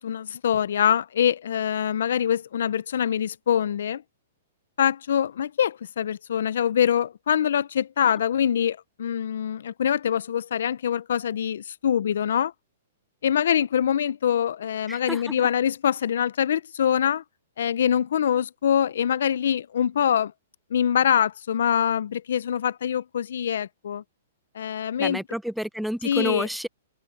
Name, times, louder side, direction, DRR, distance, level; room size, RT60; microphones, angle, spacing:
voice 1, 0.0-4.0 4.8-12.5 13.2-17.2 17.6-20.3 20.7-24.0 24.6-25.2 26.0-26.5, left 9 dB, 70° left, 0.4 m, -24 dB
voice 2, 14.9-15.5 25.0-26.7, equal, ahead, 0.4 m, -30 dB
hypercardioid pair, 170°, 0 cm